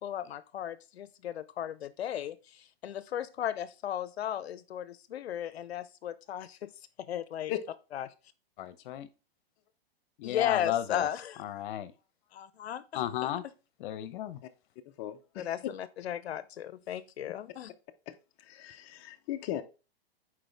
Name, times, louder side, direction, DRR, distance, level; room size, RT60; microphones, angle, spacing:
voice 1, 0.0-6.7 7.1-7.5 7.9-8.1 10.2-11.6 12.3-13.3 15.4-17.7, left 10 dB, 90° left, 0.6 m, -35 dB
voice 2, 8.6-9.1 10.2-11.1 11.4-11.9 12.9-13.4 13.8-14.4, left 12 dB, 55° left, 0.8 m, -34 dB
voice 3, 15.0-15.5 18.5-19.6, left 12 dB, 30° left, 0.5 m, -37 dB
6.2 x 4.7 x 3.4 m
hypercardioid pair, 135°, 31 cm